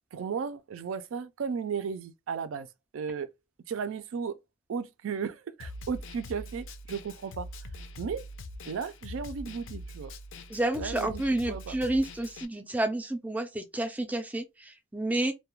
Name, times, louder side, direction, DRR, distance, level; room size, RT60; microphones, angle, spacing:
voice 1, 0.1-2.7 2.9-3.3 3.7-4.4 4.7-7.7 8.0-8.2 8.7-10.1 10.8-11.8, right 6 dB, 85° right, 0.4 m, -35 dB
Snare drum, 5.6-12.4, left 1 dB, 70° left, 0.4 m, -43 dB
voice 2, 10.5-15.3, right 1 dB, 10° right, 0.3 m, -30 dB
2.3 x 2.1 x 3.0 m
head